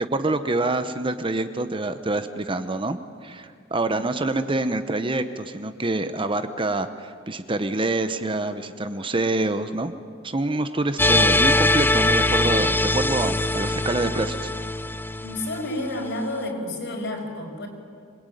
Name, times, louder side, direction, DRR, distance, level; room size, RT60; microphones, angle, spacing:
voice 1, 0.0-9.9 10.2-14.5, right 2 dB, 25° right, 10 dB, 0.9 m, -26 dB
sound 1, 11.0-16.1, left 1 dB, 10° left, 0.6 m, -22 dB
voice 2, 15.2-17.7, left 1 dB, 60° left, 2 dB, 5.4 m, -30 dB
26.5 x 21.5 x 9.3 m, 2.2 s
head